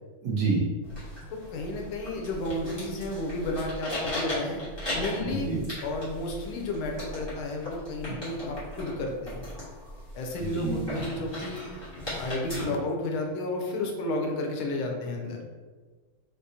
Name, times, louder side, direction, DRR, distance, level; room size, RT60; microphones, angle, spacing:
voice 1, 0.2-0.6 5.2-5.6 8.1-8.2 10.4-11.0, right 3 dB, 60° right, -6 dB, 1.4 m, -29 dB
sound 1, 0.8-12.6, left 1 dB, 15° left, 1.2 m, -38 dB
voice 2, 1.3-4.6 4.9-5.5 5.8-9.4 10.1-11.6 12.2-15.4, left 1 dB, 85° left, 1 dB, 1.5 m, -32 dB
4.0 x 3.7 x 2.8 m, 1.4 s
omnidirectional pair, 2.3 m